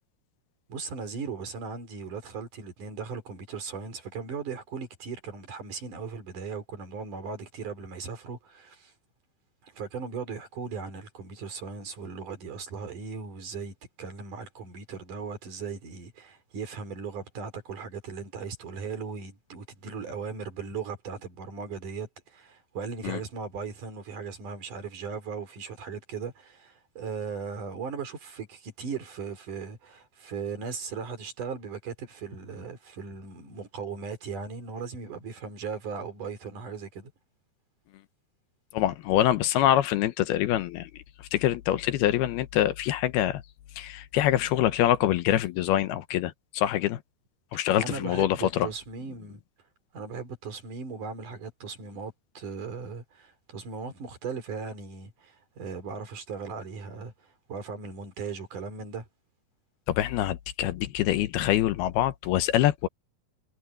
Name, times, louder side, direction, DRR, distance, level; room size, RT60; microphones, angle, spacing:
voice 1, 0.7-8.9 9.6-37.1 47.8-49.4 49.9-59.1, right 5 dB, 50° right, 5.2 m, -38 dB
voice 2, 38.7-40.9 41.3-43.4 43.8-47.0 47.5-48.7 59.9-62.9, left 13 dB, 80° left, 2.8 m, -25 dB
omnidirectional pair, 4.7 m